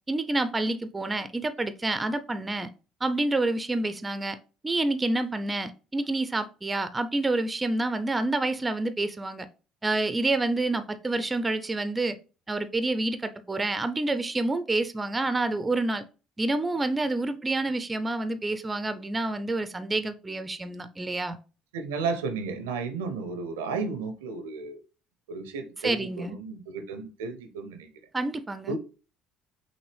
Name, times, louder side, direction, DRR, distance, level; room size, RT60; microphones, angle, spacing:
voice 1, 0.1-2.7 3.0-4.4 4.6-9.5 9.8-12.2 12.5-16.0 16.4-21.4 25.8-26.4 28.1-28.8, right 2 dB, 20° right, 0.5 m, -28 dB
voice 2, 21.7-24.8 25.3-27.9 28.7-28.8, right 4 dB, 75° right, 0.6 m, -33 dB
5.9 x 2.7 x 3.3 m
figure-of-eight pair, 55°, 0 cm